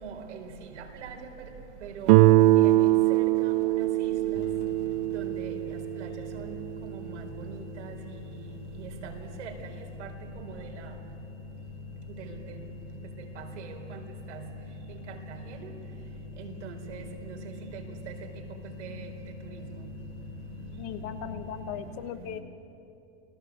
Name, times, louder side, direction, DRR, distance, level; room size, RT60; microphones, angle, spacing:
voice 1, 0.0-0.5 0.9-1.2 1.8-4.1 5.1-6.6 6.9-7.9 8.8-9.7 10.0-10.1 10.4-10.8 12.3-12.4 13.4-14.0 14.3-14.4 15.6-15.7 16.4-17.4 17.7-17.8 18.1-18.2 18.8-19.1, right 6 dB, 85° right, 3 dB, 4.4 m, -42 dB
Guitar, 2.1-6.9, right 17 dB, 35° right, 0.5 m, -22 dB
sound 1, 4.3-21.8, left 3 dB, 60° left, 3.9 m, -44 dB
voice 2, 20.8-22.4, left 9 dB, 40° left, 10 dB, 1.3 m, -38 dB
28.0 x 19.0 x 8.4 m, 2.8 s
supercardioid pair, 155°, 34 cm